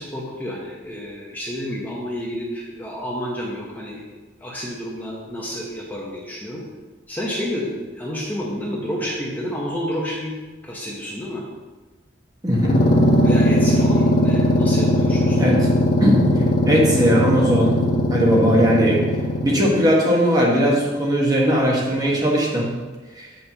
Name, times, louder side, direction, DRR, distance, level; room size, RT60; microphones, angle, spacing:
voice 1, 0.0-4.1 4.4-6.6 7.1-10.3 10.6-11.4 13.2-15.6, equal, 10° left, -4 dB, 0.9 m, -30 dB
voice 2, 12.4-12.8 15.4-15.6 16.0-16.2 16.6-17.8 18.1-19.0 19.4-22.7 23.2-23.3, equal, 20° right, -3 dB, 1.3 m, -18 dB
sound 1, 12.5-19.8, left 1 dB, 50° left, 1.2 m, -19 dB
8.5 x 6.6 x 2.9 m, 1.2 s
head